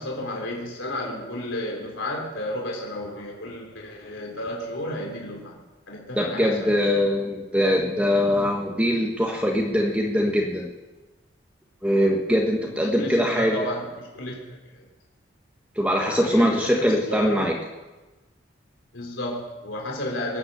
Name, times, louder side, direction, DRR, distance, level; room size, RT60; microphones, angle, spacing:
voice 1, 0.0-5.6 5.9-6.8 12.7-14.6 16.1-17.5 18.9-20.4, left 1 dB, 90° left, 0 dB, 3.5 m, -32 dB
voice 2, 6.1-10.7 11.8-13.7 15.8-17.5, equal, 5° right, -1 dB, 1.4 m, -22 dB
21.5 x 9.5 x 6.8 m, 1.2 s
head